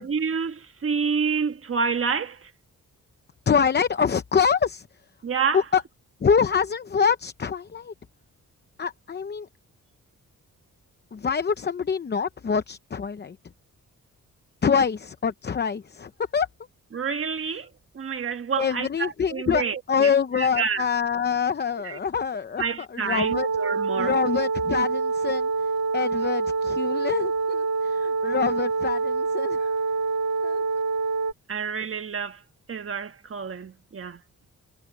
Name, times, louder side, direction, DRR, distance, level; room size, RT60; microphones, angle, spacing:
voice 1, 0.0-2.5 5.2-5.6 16.9-17.7 17.9-20.8 21.8-22.0 22.6-24.2 31.5-32.4 32.7-34.2, right 6 dB, 45° right, 1.5 m, -28 dB
voice 2, 3.5-4.9 5.5-5.8 6.2-7.9 8.8-9.5 11.1-13.4 14.6-16.5 18.6-19.6 19.9-22.6 22.9-23.5 24.0-25.5 25.9-29.8 30.4-30.6, left 6 dB, 35° left, 0.7 m, -25 dB
sound 1, 23.2-31.3, right 4 dB, 60° right, 2.0 m, -26 dB
wide cardioid pair, 140°, 32 cm